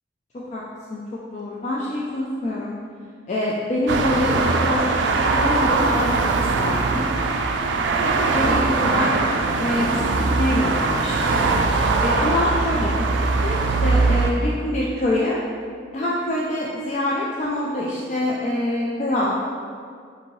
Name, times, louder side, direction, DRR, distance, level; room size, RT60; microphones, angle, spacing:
voice 1, 1.3-2.7 3.3-6.1 6.6-7.1 8.0-11.6 12.0-13.0 13.4-15.4 15.9-19.5, left 1 dB, 40° left, -5 dB, 0.4 m, -25 dB
sound 1, 3.9-14.3, right 3 dB, 90° right, 0.3 m, -21 dB
5.1 x 2.7 x 3.1 m, 2.1 s
head